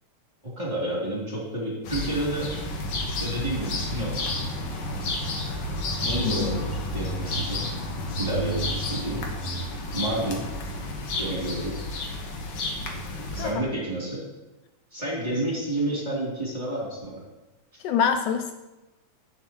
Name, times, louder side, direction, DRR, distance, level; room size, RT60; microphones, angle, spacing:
voice 1, 0.4-2.5 3.1-4.1 6.0-7.7 8.2-9.2 9.9-10.4 11.2-11.8 13.3-14.2 14.9-17.2, right 1 dB, 15° right, -7 dB, 2.7 m, -30 dB
sound 1, 1.9-13.5, left 1 dB, 60° left, 2.0 m, -31 dB
voice 2, 6.2-6.6 13.4-13.7 17.8-18.5, left 7 dB, 80° left, 6 dB, 2.0 m, -25 dB
11.0 x 8.6 x 3.0 m, 1.1 s
omnidirectional pair, 3.7 m